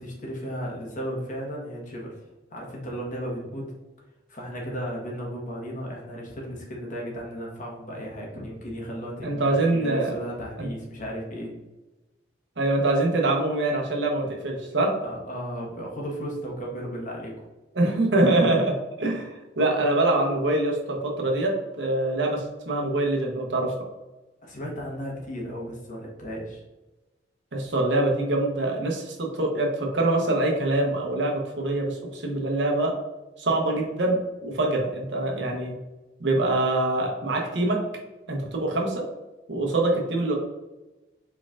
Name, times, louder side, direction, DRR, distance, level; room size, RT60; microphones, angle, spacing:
voice 1, 0.0-2.1 2.5-3.7 4.3-11.5 15.0-17.4 24.4-26.6, equal, 45° left, -2 dB, 1.3 m, -35 dB
voice 2, 9.2-10.1 10.6-10.7 12.6-14.9 17.7-23.7 27.5-32.9 33.4-35.7 36.2-37.8 38.3-39.0 39.5-40.3, right 2 dB, 70° right, 1 dB, 1.0 m, -24 dB
4.6 x 4.2 x 2.4 m, 1.1 s
head